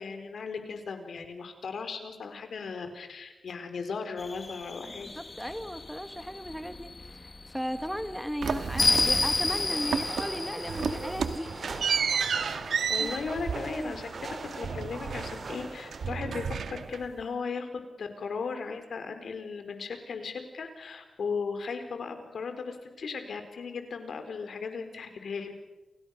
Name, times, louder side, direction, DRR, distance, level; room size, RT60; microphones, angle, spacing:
voice 1, 0.0-5.1 12.9-25.5, left 5 dB, 65° left, 7 dB, 4.4 m, -37 dB
sound 1, 4.2-11.7, left 3 dB, 25° left, 1.3 m, -31 dB
voice 2, 4.8-11.6 13.0-13.1 13.8-14.0, equal, ahead, 10 dB, 1.0 m, -36 dB
sound 2, 8.4-9.6 9.9-10.4 10.7-15.6 15.9-17.2, right 6 dB, 80° right, 2.0 m, -32 dB
sound 3, 9.5-16.1, right 3 dB, 45° right, 3.1 m, -41 dB
30.0 x 29.0 x 6.7 m, 1.1 s
wide cardioid pair, 180°, 0 cm